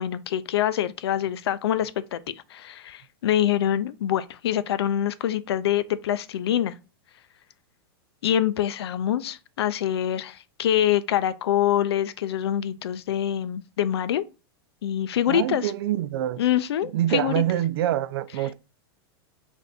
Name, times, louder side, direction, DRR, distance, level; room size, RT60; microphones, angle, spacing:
voice 1, 0.0-6.7 8.2-14.2 14.8-15.7 16.4-17.4, left 11 dB, 85° left, 0.4 m, -25 dB
voice 2, 15.3-16.4 16.8-18.5, right 12 dB, 70° right, 0.4 m, -25 dB
3.3 x 2.6 x 4.0 m
supercardioid pair, 145°, 13 cm